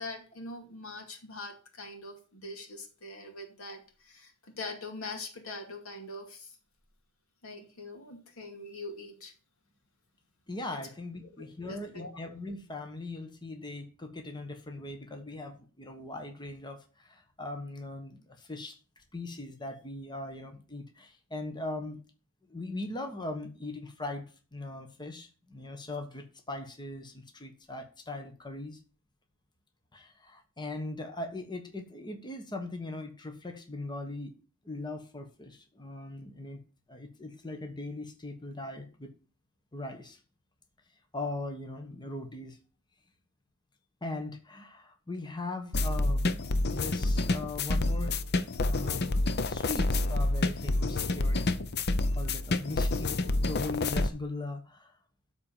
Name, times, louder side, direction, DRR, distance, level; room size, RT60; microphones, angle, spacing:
voice 1, 0.0-6.6 7.4-9.3 11.6-12.1, left 2 dB, 90° left, 4 dB, 2.4 m, -43 dB
voice 2, 10.5-18.8 19.1-22.0 22.5-24.2 24.5-28.8 29.9-34.3 34.6-36.6 36.9-39.1 39.7-40.2 41.1-42.6 44.0-48.1 48.6-49.1 49.5-51.6 52.2-54.9, left 2 dB, 20° left, 5 dB, 1.3 m, -40 dB
sound 1, 45.7-54.1, left 2 dB, 50° left, 0.7 m, -28 dB
12.5 x 4.3 x 7.1 m, 0.37 s
head